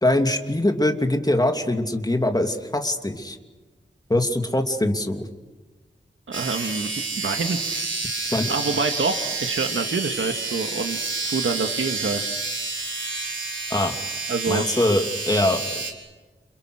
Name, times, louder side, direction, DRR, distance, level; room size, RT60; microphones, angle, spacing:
voice 1, 0.0-3.4 4.1-5.3 8.3-8.5 13.7-13.9 14.5-15.6, left 1 dB, 20° left, 4 dB, 2.9 m, -22 dB
sound 1, 6.3-15.9, right 3 dB, 75° right, 4.5 m, -29 dB
voice 2, 6.3-6.9 7.2-7.9 8.3-11.0 11.2-12.2 14.3-14.7, right 4 dB, 90° right, 5 dB, 2.0 m, -26 dB
29.5 x 28.5 x 6.5 m, 1.3 s
wide cardioid pair, 95°, 20 cm